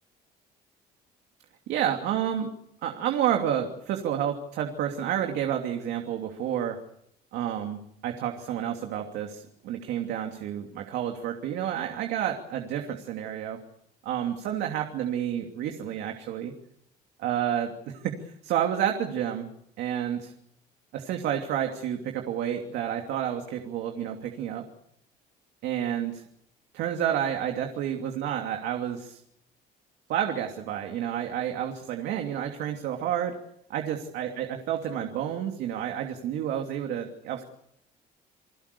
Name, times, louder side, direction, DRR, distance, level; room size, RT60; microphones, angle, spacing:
voice 1, 1.7-2.5 2.8-6.8 7.3-13.6 14.0-16.5 17.2-19.5 19.8-20.3 20.9-24.6 25.6-26.2 26.7-29.2 30.1-33.3 33.7-37.4, right 10 dB, 85° right, 3 dB, 2.9 m, -30 dB
29.5 x 21.0 x 6.9 m, 0.75 s
cardioid pair, 110°, 17 cm